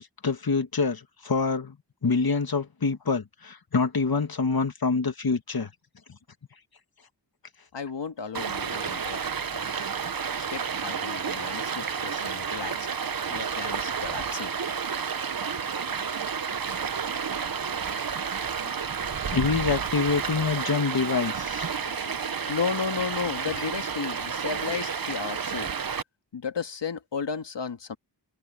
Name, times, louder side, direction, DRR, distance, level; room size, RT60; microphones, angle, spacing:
voice 1, 0.0-1.8 2.0-5.7 19.3-22.0, left 4 dB, 55° left, 1.9 m, -26 dB
voice 2, 7.7-9.2 9.5-9.9 10.5-12.9 13.3-14.5 22.5-25.7 26.3-28.0, left 5 dB, 75° left, 1.9 m, -33 dB
Stream, 8.3-26.0, right 6 dB, 55° right, 1.0 m, -31 dB
cardioid pair, 55°, 43 cm